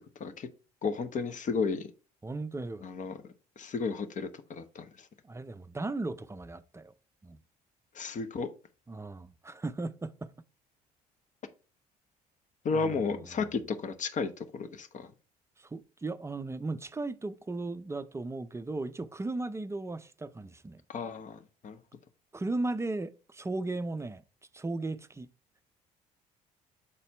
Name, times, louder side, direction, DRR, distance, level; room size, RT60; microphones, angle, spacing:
voice 1, 0.8-1.9 2.8-3.2 3.6-4.9 7.9-8.5 12.6-15.1 20.9-21.8, left 4 dB, 40° left, 0.8 m, -33 dB
voice 2, 2.2-2.8 5.2-6.9 7.2-7.4 8.9-10.3 12.7-13.2 15.6-20.8 22.3-24.2 24.5-25.3, right 2 dB, 15° right, 0.5 m, -36 dB
6.8 x 4.2 x 3.3 m
hypercardioid pair, 55°, 20 cm